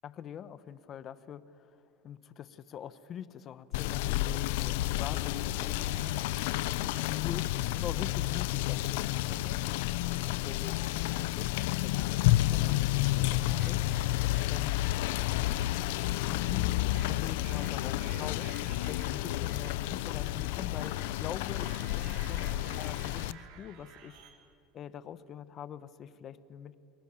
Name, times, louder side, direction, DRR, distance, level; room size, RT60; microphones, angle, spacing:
voice 1, 0.0-6.2 6.8-13.8 14.5-14.8 16.2-24.2 24.7-26.8, left 9 dB, 40° left, 15 dB, 1.1 m, -44 dB
Rain / Motor vehicle (road), 3.7-23.3, left 15 dB, 80° left, 0.7 m, -30 dB
sound 1, 5.5-7.9 9.5-10.8 11.1-11.9 12.3-24.3, right 7 dB, 65° right, 3.9 m, -55 dB
29.0 x 20.0 x 7.3 m, 2.7 s
supercardioid pair, 120°, 0 cm